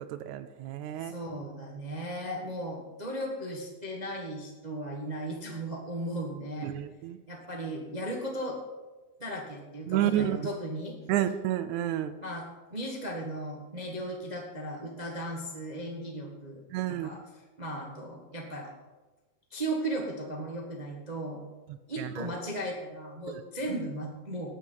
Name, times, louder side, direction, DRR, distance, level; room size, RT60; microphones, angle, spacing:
voice 1, 0.1-1.1 6.6-7.2 9.9-10.4 11.1-12.2 16.7-17.1 22.0-22.3 23.3-23.4, right 12 dB, 75° right, 11 dB, 1.9 m, -30 dB
voice 2, 1.0-6.7 7.3-8.6 9.2-11.0 12.2-18.7 19.5-21.4 21.9-24.5, right 1 dB, 50° right, -1 dB, 0.5 m, -36 dB
19.0 x 6.4 x 5.5 m, 1.2 s
omnidirectional pair, 3.6 m